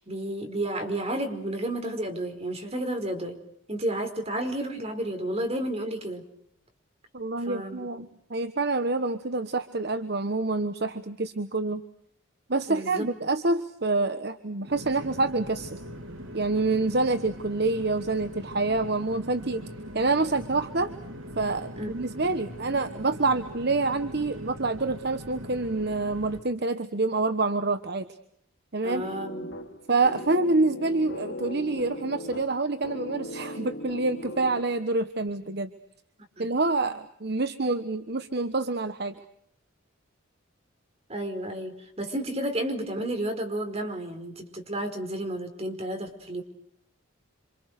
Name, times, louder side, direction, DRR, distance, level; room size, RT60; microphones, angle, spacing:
voice 1, 0.0-3.4 3.7-6.2 7.4-7.9 12.7-13.1 21.8-21.9 28.8-29.5 36.4-36.5 41.1-46.4, right 1 dB, 30° right, 6 dB, 5.0 m, -31 dB
voice 2, 7.1-11.8 12.5-15.8 16.3-19.6 19.9-20.9 21.4-28.1 28.7-29.1 29.9-35.7 36.4-39.1, right 3 dB, 55° right, 10 dB, 1.2 m, -27 dB
sound 1, 14.7-26.4, equal, 80° right, 3.8 m, -41 dB
sound 2, 29.0-35.0, left 1 dB, 65° left, 3.1 m, -38 dB
27.5 x 27.0 x 6.7 m, 0.70 s
head